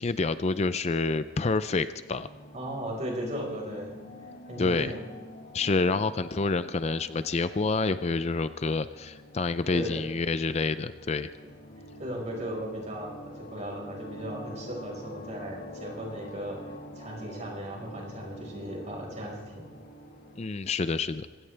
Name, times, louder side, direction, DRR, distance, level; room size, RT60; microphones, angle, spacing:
voice 1, 0.0-2.3 4.6-4.9 5.5-11.3 20.4-21.3, left 3 dB, 35° left, 13 dB, 0.5 m, -28 dB
sound 1, 2.1-20.5, left 1 dB, 55° left, 1.9 m, -46 dB
voice 2, 2.5-3.9 4.4-5.0 9.7-10.0 12.0-19.6, equal, 40° right, -1 dB, 4.9 m, -36 dB
26.0 x 16.0 x 3.4 m, 1.5 s
head